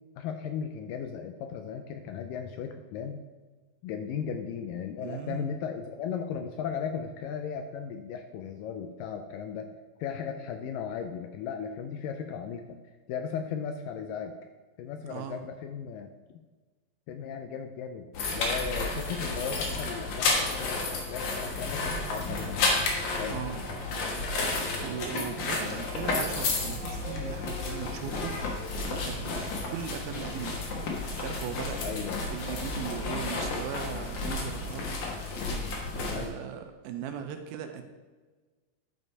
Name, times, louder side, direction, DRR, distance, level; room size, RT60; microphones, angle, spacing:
voice 1, 0.2-3.2 3.8-9.7 10.0-12.8 13.1-14.3 14.8-16.1 17.1-22.8 23.2-23.4 31.8-32.2 35.5-35.7 36.1-36.4, left 7 dB, 80° left, 6 dB, 2.0 m, -36 dB
voice 2, 5.0-5.5 15.1-15.4 23.3-24.3 24.8-28.5 28.9-30.9 31.2-34.9 36.0-37.8, right 8 dB, 80° right, 6 dB, 2.6 m, -39 dB
sound 1, 18.1-36.3, left 3 dB, 60° left, 2.6 m, -32 dB
11.0 x 5.3 x 4.7 m, 1.3 s
omnidirectional pair, 4.4 m